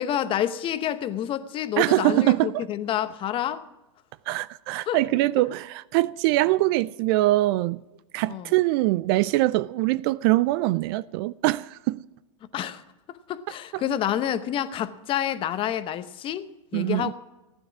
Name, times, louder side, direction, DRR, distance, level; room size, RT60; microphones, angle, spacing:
voice 1, 0.0-3.6 4.9-5.0 8.3-8.5 12.5-12.8 13.1-17.1, left 10 dB, 30° left, 0.9 m, -28 dB
voice 2, 1.8-2.6 4.3-7.8 8.1-12.0 13.7-13.8 16.7-17.1, right 18 dB, 45° right, 0.4 m, -23 dB
15.0 x 10.0 x 6.1 m
hypercardioid pair, 105°, 17 cm